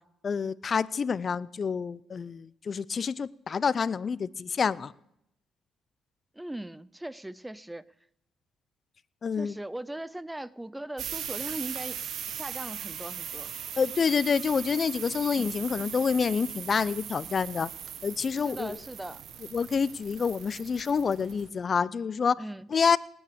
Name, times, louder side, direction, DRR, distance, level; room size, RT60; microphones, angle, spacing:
voice 1, 0.2-4.9 9.2-9.6 13.8-17.7 18.0-18.8 19.5-22.4 22.7-23.0, left 6 dB, 45° left, 20 dB, 0.5 m, -27 dB
voice 2, 6.3-7.9 9.4-12.0 12.3-13.5 15.4-15.6 18.4-19.2 22.4-22.7, right 1 dB, 10° right, 19 dB, 0.5 m, -39 dB
sound 1, 11.0-21.5, right 8 dB, 70° right, 1.2 m, -39 dB
18.5 x 9.4 x 6.8 m, 0.79 s
cardioid pair, 90°, 0 cm